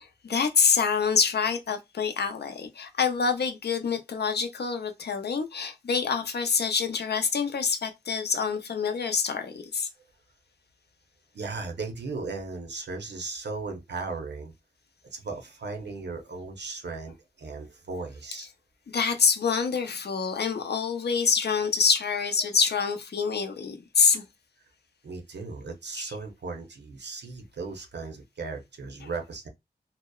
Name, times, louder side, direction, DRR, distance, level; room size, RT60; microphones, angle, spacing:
voice 1, 0.0-9.9 18.9-24.2 25.9-26.0 29.0-29.1, left 5 dB, 70° left, 0.4 m, -26 dB
voice 2, 11.3-14.5 15.0-18.5 25.0-29.5, right 4 dB, 85° right, 0.6 m, -36 dB
2.7 x 2.0 x 2.2 m
wide cardioid pair, 80°, 17 cm